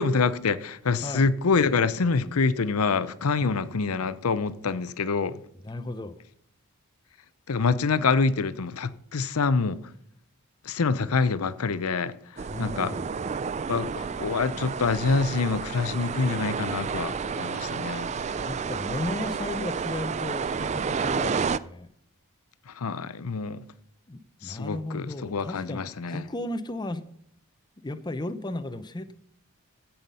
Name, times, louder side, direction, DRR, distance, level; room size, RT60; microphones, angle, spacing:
voice 1, 0.0-5.4 7.5-9.8 10.6-12.9 13.7-18.1 22.7-23.6 24.4-26.2, left 4 dB, 80° left, 0.6 m, -26 dB
voice 2, 5.6-6.2 12.5-13.1 18.3-21.9 24.1-25.8 26.1-27.1 27.8-29.1, left 1 dB, 20° left, 0.6 m, -35 dB
sound 1, 12.4-21.6, right 5 dB, 30° right, 0.3 m, -31 dB
15.5 x 5.8 x 5.4 m
head